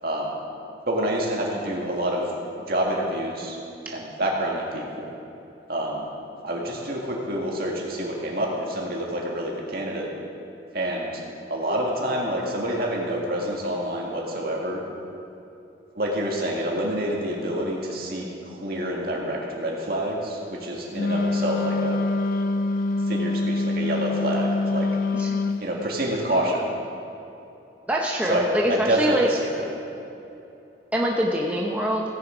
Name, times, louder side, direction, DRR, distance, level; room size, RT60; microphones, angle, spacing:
voice 1, 0.9-2.3 2.7-3.6 3.9-5.1 5.7-6.1 6.4-10.1 10.7-11.2 11.5-14.8 16.0-22.0 23.1-24.9 25.6-26.7 28.3-29.7, right 1 dB, 55° right, -2 dB, 1.9 m, -27 dB
Wind instrument woodwind instrument, 20.9-25.7, left 3 dB, 50° left, 0.4 m, -25 dB
voice 2, 25.1-25.5 27.9-29.3 30.9-32.0, equal, 10° right, -2 dB, 0.7 m, -24 dB
16.5 x 6.9 x 5.0 m, 2.9 s
head